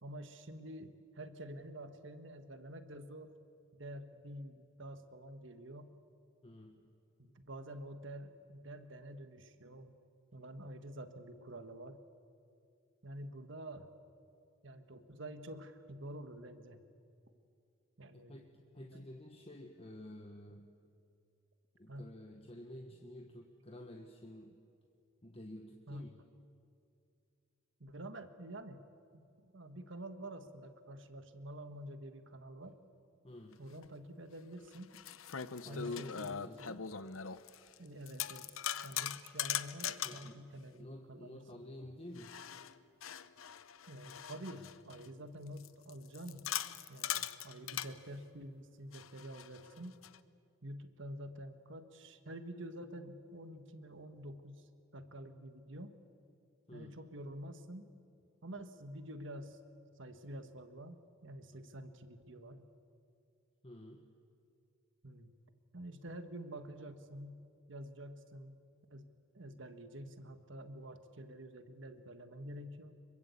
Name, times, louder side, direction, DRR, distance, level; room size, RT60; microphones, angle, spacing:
voice 1, 0.0-3.3 3.7-6.0 7.2-9.9 10.3-12.0 13.0-13.9 14.6-16.8 18.0-18.4 21.9-22.1 25.9-26.1 27.8-28.8 29.4-32.8 33.6-35.0 35.7-36.5 37.8-41.6 43.9-46.5 46.9-50.0 50.6-54.7 54.9-56.0 56.7-57.8 58.4-59.6 60.0-62.7 65.0-65.3 65.7-67.4 67.7-68.6 68.9-73.0, right 1 dB, 65° right, 9 dB, 1.6 m, -48 dB
voice 2, 6.4-6.8 18.1-20.8 21.8-24.6 25.2-26.2 33.2-33.6 35.6-36.9 40.0-40.4 40.7-42.4 56.7-57.0 61.5-61.6 63.6-64.1, left 1 dB, 30° left, 3 dB, 1.3 m, -51 dB
sound 1, 33.8-33.9 34.7-37.8 38.1-40.3 42.2-45.1 45.6-47.9 48.9-50.2, left 9 dB, 90° left, 0.8 m, -41 dB
25.5 x 23.0 x 8.4 m, 2.4 s
head